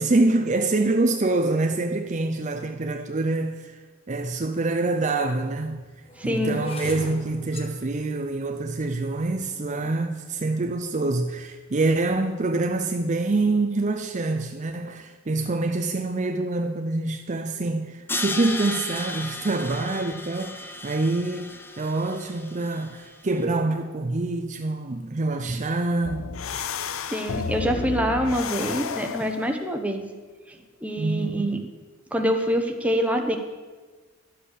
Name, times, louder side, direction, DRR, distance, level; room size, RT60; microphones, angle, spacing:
voice 1, 0.0-3.7 4.1-5.8 6.2-26.2 31.0-31.5, right 2 dB, 35° right, 5 dB, 0.6 m, -26 dB
sound 1, 4.4-4.5 5.2-11.4 12.1-12.4 12.7-13.1, left 1 dB, 30° left, 1.3 m, -41 dB
voice 2, 6.2-6.6 27.1-30.0 30.5-31.6 32.1-33.4, equal, 5° right, 3 dB, 1.1 m, -25 dB
Crash cymbal, 18.1-23.1, left 2 dB, 10° left, 0.7 m, -35 dB
sound 2, 26.0-29.5, left 6 dB, 90° left, 0.6 m, -31 dB
11.5 x 7.8 x 6.6 m, 1.4 s
head